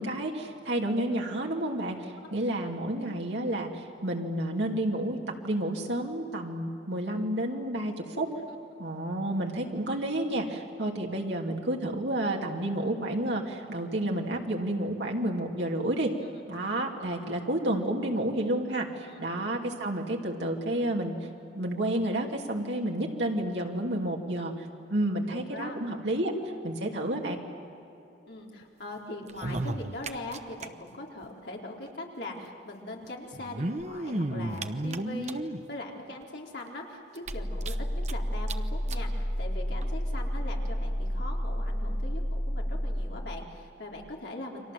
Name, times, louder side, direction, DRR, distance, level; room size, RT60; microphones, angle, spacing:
voice 1, 0.0-5.2 5.4-8.3 8.8-16.1 16.5-21.1 21.5-26.3 26.6-27.4, right 1 dB, 75° right, 0 dB, 2.8 m, -30 dB
voice 2, 25.3-25.8 26.5-26.6 28.3-44.7, left 1 dB, 65° left, -1 dB, 4.2 m, -41 dB
sound 1, 29.2-30.7 30.9-31.0 31.2-31.3 32.4-32.5 33.3-35.6 36.2-36.3 36.7-36.8 37.2-38.1 38.5-38.6 38.9-39.0 39.8-39.9, right 1 dB, 40° right, 1.0 m, -33 dB
sound 2, 37.3-43.1, equal, 30° left, 7.0 m, -30 dB
30.0 x 24.5 x 7.7 m, 2.9 s
head